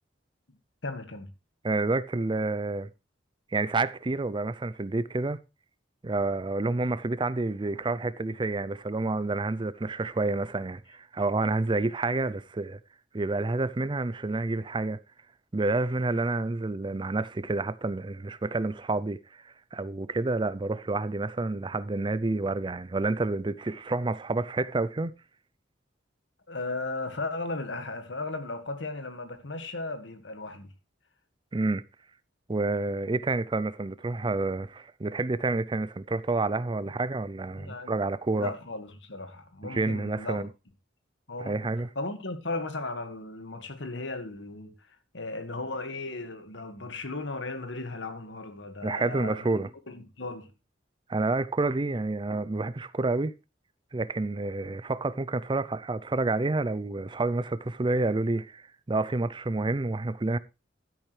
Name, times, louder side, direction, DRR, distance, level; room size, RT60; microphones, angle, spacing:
voice 1, 0.8-1.3 26.5-30.7 37.6-38.0 38.3-40.5 41.3-50.5, left 2 dB, 70° left, 1.8 m, -36 dB
voice 2, 1.6-2.9 3.5-5.4 6.0-12.8 13.1-15.0 15.5-25.1 31.5-31.8 32.5-38.5 39.6-40.5 41.4-41.9 48.8-49.7 51.1-53.3 53.9-60.4, right 2 dB, 25° right, 0.5 m, -29 dB
12.0 x 10.5 x 3.3 m
head